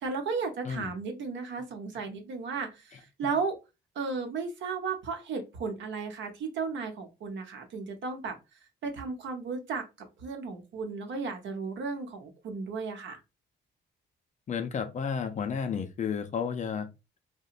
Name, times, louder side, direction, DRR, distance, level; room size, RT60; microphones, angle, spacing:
voice 1, 0.0-3.6 3.9-8.4 8.8-9.8 10.2-13.2, right 4 dB, 70° right, 0.7 m, -34 dB
voice 2, 14.5-16.9, left 6 dB, 40° left, 0.4 m, -32 dB
2.8 x 2.1 x 2.4 m
cardioid pair, 90°, 20 cm